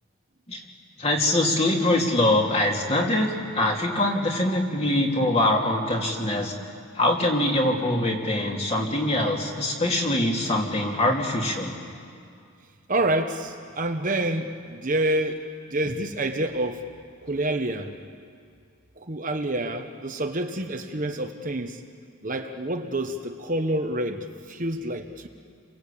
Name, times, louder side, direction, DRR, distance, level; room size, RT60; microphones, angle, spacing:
voice 1, 1.0-6.5 7.0-11.8, left 1 dB, 25° left, 0 dB, 2.9 m, -23 dB
voice 2, 12.9-15.4 15.7-16.8 17.3-17.9 19.0-21.8 22.2-25.3, right 1 dB, 35° right, 5 dB, 1.1 m, -27 dB
30.0 x 23.0 x 8.6 m, 2.3 s
head